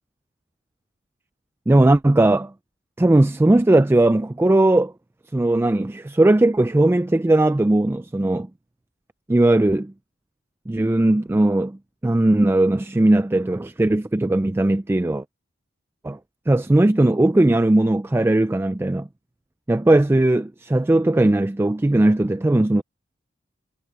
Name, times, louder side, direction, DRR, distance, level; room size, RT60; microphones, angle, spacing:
voice 1, 1.7-2.5 3.0-4.9 5.3-8.5 9.3-9.9 10.7-11.8 12.0-15.2 16.0-16.2 16.5-19.1 19.7-22.8, right 1 dB, 15° right, 0.3 m, -18 dB
head